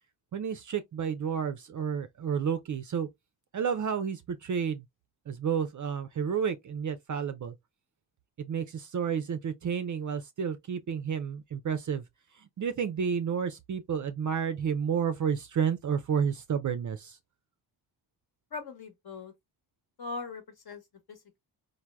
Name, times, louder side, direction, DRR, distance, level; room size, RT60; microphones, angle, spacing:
voice 1, 0.3-3.1 3.5-4.8 5.3-7.5 8.4-12.0 12.6-17.2, right 7 dB, 40° right, 0.4 m, -31 dB
voice 2, 18.5-19.3 20.0-20.8 21.1-21.4, left 3 dB, 50° left, 1.1 m, -40 dB
3.3 x 2.2 x 2.2 m
supercardioid pair, 50°, 49 cm